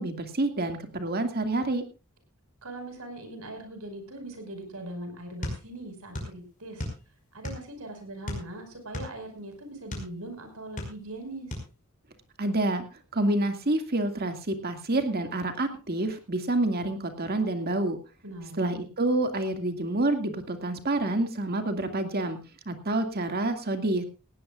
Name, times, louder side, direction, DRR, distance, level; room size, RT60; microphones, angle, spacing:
voice 1, 0.0-1.8 12.4-12.8 13.1-18.0 18.6-22.4 22.7-24.0, right 2 dB, 45° right, 6 dB, 2.2 m, -28 dB
voice 2, 2.6-6.9 7.3-11.5 18.2-18.7, right 1 dB, 75° right, 6 dB, 5.3 m, -41 dB
sound 1, 5.4-6.4 6.6-7.8 8.2-10.1 10.6-11.2 11.5-11.7, left 1 dB, 35° left, 5.3 m, -35 dB
19.0 x 16.5 x 2.5 m, 0.31 s
head